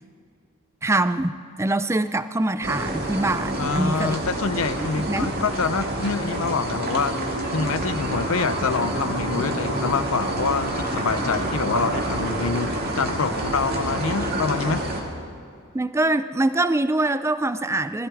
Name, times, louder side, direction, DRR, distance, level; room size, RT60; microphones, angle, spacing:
voice 1, 0.8-4.2 4.5-5.4 14.2-14.3 15.7-18.1, right 2 dB, 10° right, 13 dB, 0.4 m, -24 dB
sound 1, 2.6-15.0, right 1 dB, 45° right, 2.1 m, -28 dB
voice 2, 3.6-7.2 7.5-14.8, left 4 dB, 65° left, 13 dB, 0.6 m, -26 dB
20.0 x 14.5 x 4.8 m, 2.3 s
head